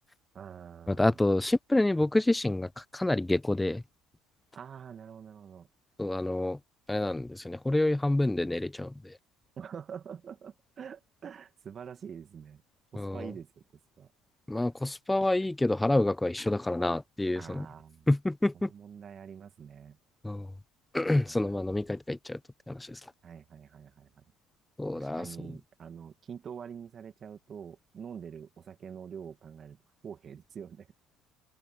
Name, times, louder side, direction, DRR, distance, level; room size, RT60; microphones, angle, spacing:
voice 1, 0.3-1.2 4.5-5.7 9.6-12.6 12.9-13.6 14.0-14.1 17.3-18.1 18.5-20.0 21.2-21.6 23.2-24.2 24.9-30.9, right 7 dB, 40° right, 1.9 m, -45 dB
voice 2, 0.9-3.8 6.0-6.6 6.9-9.2 13.0-13.3 14.5-17.7 18.1-18.7 20.2-20.5 20.9-22.4 22.7-23.0 24.8-25.5, left 2 dB, 10° left, 1.0 m, -28 dB
hypercardioid pair, 80°, 0 cm